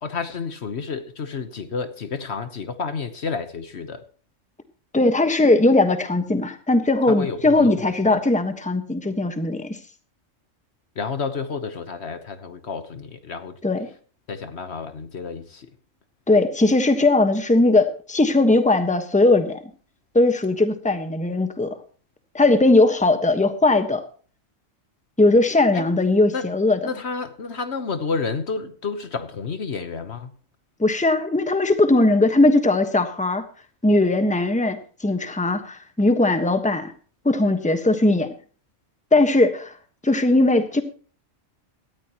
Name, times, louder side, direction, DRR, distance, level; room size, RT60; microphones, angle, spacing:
voice 1, 0.0-4.0 7.1-8.1 11.0-13.6 14.3-15.7 25.7-25.8 26.3-26.5 26.8-30.3, left 5 dB, 60° left, 10 dB, 1.3 m, -30 dB
voice 2, 4.9-9.8 13.6-13.9 16.3-19.6 20.1-21.8 22.3-24.0 25.2-26.8 30.8-33.4 33.8-36.9 37.2-38.3 39.1-39.7 40.0-40.8, left 2 dB, 5° left, 8 dB, 1.2 m, -19 dB
18.0 x 14.0 x 3.0 m, 0.39 s
omnidirectional pair, 1.3 m